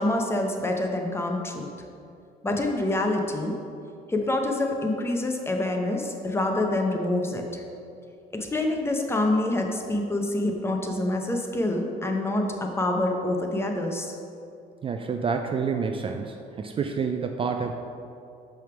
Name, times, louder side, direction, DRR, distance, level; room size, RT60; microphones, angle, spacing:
voice 1, 0.0-1.7 2.4-3.6 4.1-7.6 8.3-14.2, left 1 dB, 15° left, 2 dB, 0.7 m, -26 dB
voice 2, 14.8-17.7, right 5 dB, 30° right, 5 dB, 0.3 m, -28 dB
6.4 x 3.5 x 5.9 m, 2.6 s
cardioid pair, 110°, 17 cm